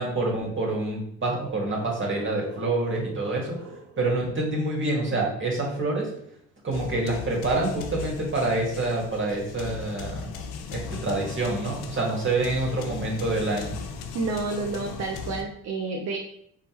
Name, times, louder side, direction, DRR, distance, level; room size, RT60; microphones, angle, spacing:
voice 1, 0.0-3.6 4.0-6.1 6.6-10.3 10.7-13.7, right 2 dB, 40° right, -1 dB, 1.8 m, -27 dB
sound 1, 1.4-5.1, right 3 dB, 70° right, 1.0 m, -45 dB
sound 2, 6.7-15.4, left 5 dB, 80° left, 0.6 m, -38 dB
voice 2, 14.1-16.2, right 3 dB, 55° right, 1 dB, 0.8 m, -29 dB
4.8 x 3.5 x 3.0 m, 0.70 s
supercardioid pair, 75°, 32 cm